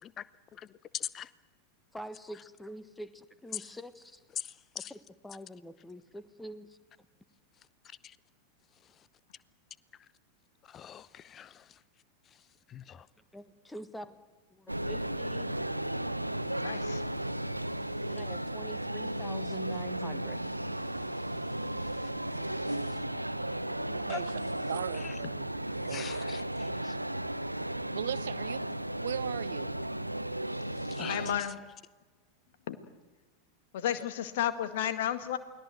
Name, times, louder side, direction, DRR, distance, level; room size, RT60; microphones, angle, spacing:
voice 1, 0.9-1.3 3.5-3.6 4.4-4.9 8.0-8.2 10.7-11.7 12.7-13.1 21.9-22.0 22.5-23.0 24.1-24.2 25.0-25.1 25.9-27.0 30.9-31.3, left 9 dB, 25° left, 18 dB, 0.8 m, -41 dB
voice 2, 1.9-4.2 4.9-5.0 5.2-6.8 13.3-14.2 14.5-15.6 18.1-20.4, equal, 5° left, 12 dB, 1.5 m, -45 dB
sound 1, 14.7-31.4, right 1 dB, 85° right, 0.9 m, -35 dB
voice 3, 16.6-17.0 31.1-31.6 32.7-32.8 33.7-35.4, left 10 dB, 55° left, 10 dB, 1.8 m, -32 dB
voice 4, 22.2-22.9 23.9-24.4 24.7-26.1 27.9-29.7, right 9 dB, 60° right, 16 dB, 0.9 m, -39 dB
29.0 x 21.0 x 7.9 m, 1.2 s
figure-of-eight pair, 90°, 0 cm